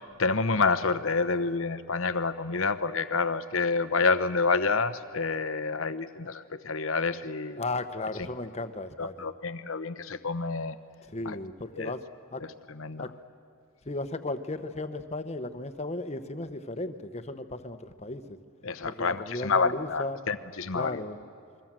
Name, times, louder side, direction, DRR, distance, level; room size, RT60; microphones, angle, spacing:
voice 1, 0.2-7.6 9.0-10.8 11.2-11.4 11.8-11.9 12.7-13.1 18.6-21.0, left 4 dB, 65° left, 12 dB, 1.0 m, -28 dB
voice 2, 7.6-9.3 11.1-12.0 12.3-12.4 13.0-13.1 13.8-18.4 18.8-20.2 20.7-21.2, left 2 dB, 30° left, 10 dB, 1.1 m, -35 dB
28.5 x 22.5 x 7.6 m, 2.5 s
head